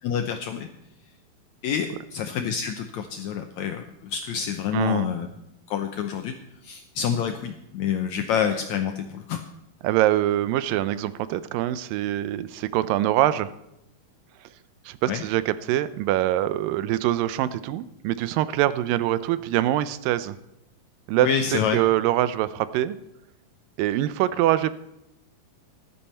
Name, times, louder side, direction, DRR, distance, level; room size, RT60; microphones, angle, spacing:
voice 1, 0.0-0.7 1.6-5.3 5.7-6.3 6.6-9.4 15.1-15.2 21.2-21.8, left 8 dB, 80° left, 6 dB, 1.6 m, -27 dB
voice 2, 4.7-5.1 9.8-13.5 14.4-14.5 14.9-20.4 21.1-23.0 23.8-24.7, right 13 dB, 80° right, 15 dB, 2.2 m, -24 dB
14.5 x 11.0 x 4.3 m, 0.85 s
omnidirectional pair, 4.1 m